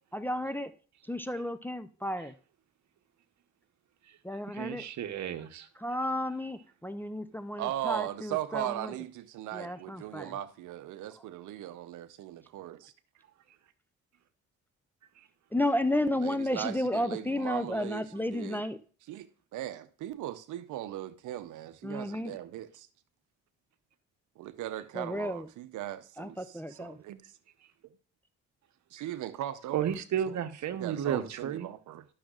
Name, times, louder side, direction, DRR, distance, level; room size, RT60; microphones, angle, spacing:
voice 1, 0.1-0.7 1.1-2.3 4.2-4.8 5.8-8.7 9.5-10.3 15.5-18.8 21.8-22.3 25.0-25.4 26.2-27.0, left 1 dB, 5° left, 0.5 m, -32 dB
voice 2, 4.1-5.7 15.2-15.3 29.0-29.1 29.7-31.7, right 9 dB, 65° right, 1.0 m, -33 dB
voice 3, 7.6-12.9 16.1-18.7 19.0-22.9 24.4-27.3 28.9-29.8 30.8-32.1, right 13 dB, 80° right, 0.7 m, -38 dB
12.0 x 6.3 x 2.4 m
cardioid pair, 90°, 30 cm